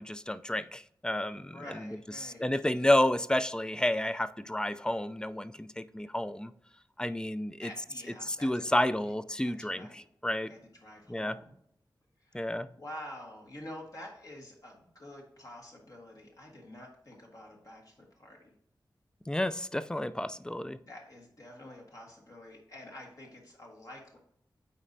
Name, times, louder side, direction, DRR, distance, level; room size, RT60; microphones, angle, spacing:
voice 1, 0.0-1.6 2.2-6.5 7.0-7.7 8.2-10.5 11.1-11.3 12.3-12.7 19.3-20.8, left 1 dB, 10° left, 13 dB, 0.3 m, -30 dB
voice 2, 1.5-2.5 7.6-9.1 9.4-10.0 10.5-11.5 12.2-18.5 20.8-24.2, left 1 dB, 50° left, -1 dB, 1.3 m, -48 dB
8.8 x 4.1 x 2.6 m, 0.74 s
wide cardioid pair, 70°, 8 cm